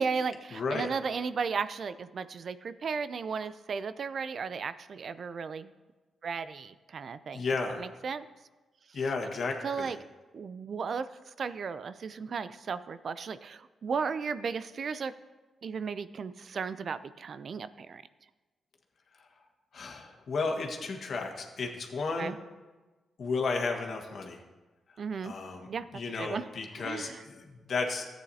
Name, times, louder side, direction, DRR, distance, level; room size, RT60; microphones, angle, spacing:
voice 1, 0.0-5.7 6.2-7.5 7.8-8.3 9.6-10.0 10.3-11.1 11.4-15.2 15.6-18.0 22.2-22.4 25.0-25.3 25.7-25.9 26.2-26.4 26.8-27.2, right 5 dB, 60° right, 14 dB, 0.4 m, -35 dB
voice 2, 0.5-0.9 7.3-7.8 8.9-9.9 19.7-22.3 23.2-24.4 25.2-27.4 27.7-28.0, left 4 dB, 60° left, 2 dB, 1.5 m, -33 dB
14.0 x 9.0 x 2.8 m, 1.2 s
supercardioid pair, 55°, 0 cm